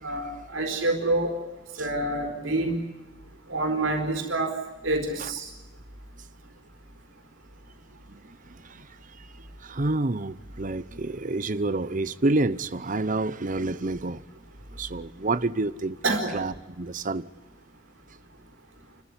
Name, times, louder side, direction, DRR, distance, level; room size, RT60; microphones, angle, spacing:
voice 1, 0.0-1.3 1.8-2.8 3.5-4.5 4.8-5.5 16.0-16.3, right 2 dB, 80° right, 4.4 m, -27 dB
voice 2, 8.1-8.9 9.2-9.3 9.6-14.2 14.7-16.0 16.3-17.3, right 2 dB, 40° right, 0.9 m, -29 dB
29.5 x 14.5 x 9.8 m
head